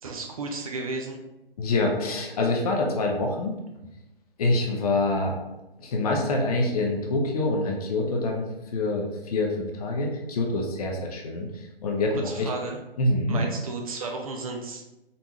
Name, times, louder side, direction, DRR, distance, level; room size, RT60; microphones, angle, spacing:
voice 1, 0.0-1.2 12.2-12.8 13.3-14.8, right 3 dB, 35° right, 2 dB, 0.5 m, -33 dB
voice 2, 1.6-3.6 4.4-5.4 5.8-12.5 13.0-13.4, left 2 dB, 40° left, 1 dB, 0.8 m, -26 dB
4.0 x 3.4 x 2.9 m, 0.95 s
figure-of-eight pair, 135°, 30 cm